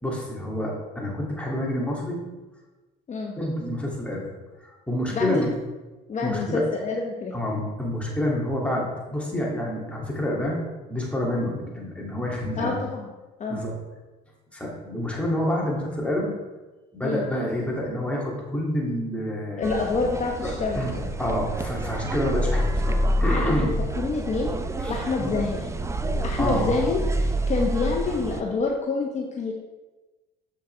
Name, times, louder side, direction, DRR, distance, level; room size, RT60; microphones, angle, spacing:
voice 1, 0.0-2.2 3.4-4.3 4.6-5.5 6.2-6.6 7.3-10.6 10.9-12.8 13.5-13.7 14.5-16.3 16.9-19.7 20.4-20.9 21.2-23.7 24.8-24.9 25.2-25.4 26.4-26.8, left 1 dB, 5° left, -3 dB, 2.3 m, -28 dB
voice 2, 5.1-5.4 6.1-7.3 12.6-13.1 13.4-13.6 17.0-17.3 19.6-21.1 23.2-24.5 24.9-25.6 26.2-29.5, left 3 dB, 35° left, 0 dB, 1.0 m, -27 dB
sound 1, 19.6-28.4, right 1 dB, 15° right, 0.6 m, -27 dB
7.2 x 5.7 x 3.3 m, 1.2 s
supercardioid pair, 80°, 20 cm